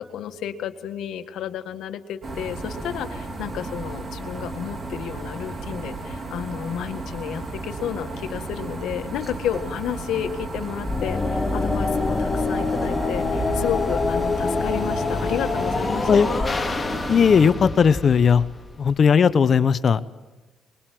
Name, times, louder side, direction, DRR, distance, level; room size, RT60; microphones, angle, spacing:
voice 1, 0.0-16.1, left 9 dB, 80° left, 8 dB, 1.6 m, -31 dB
sound 1, 2.2-17.5, right 3 dB, 35° right, 3.3 m, -34 dB
sound 2, 10.8-19.0, left 3 dB, 20° left, 2.2 m, -26 dB
voice 2, 17.1-18.4 18.8-20.0, left 6 dB, 50° left, 14 dB, 0.9 m, -17 dB
24.5 x 21.5 x 7.7 m, 1.1 s
cardioid pair, 90°, 0 cm